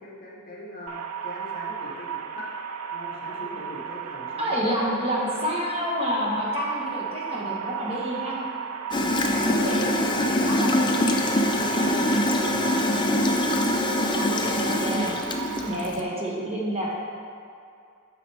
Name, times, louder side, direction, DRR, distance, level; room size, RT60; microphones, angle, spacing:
voice 1, 0.0-2.5 2.9-4.7 8.9-10.7 11.4-13.3, left 1 dB, 40° left, -4 dB, 1.2 m, -41 dB
sound 1, 0.9-15.9, right 8 dB, 75° right, 0.4 m, -34 dB
voice 2, 4.4-8.4 9.5-9.8 10.4-11.0 11.8-12.0 14.0-15.2 15.7-16.9, equal, 25° right, -5 dB, 1.2 m, -29 dB
Gurgling / Toilet flush, 8.9-16.0, left 1 dB, 20° left, 0.5 m, -24 dB
8.5 x 5.9 x 3.4 m, 2.4 s
head